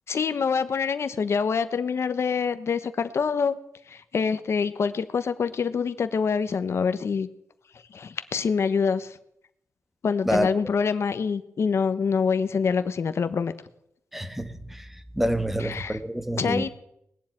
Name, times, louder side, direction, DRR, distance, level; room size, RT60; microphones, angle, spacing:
voice 1, 0.1-3.6 3.9-7.3 7.9-9.2 10.0-13.5 15.6-16.0 16.4-16.7, left 6 dB, 60° left, 10 dB, 1.0 m, -25 dB
voice 2, 14.1-16.7, equal, 5° right, 10 dB, 1.4 m, -28 dB
19.5 x 7.4 x 9.0 m, 0.76 s
cardioid pair, 90°, 5 cm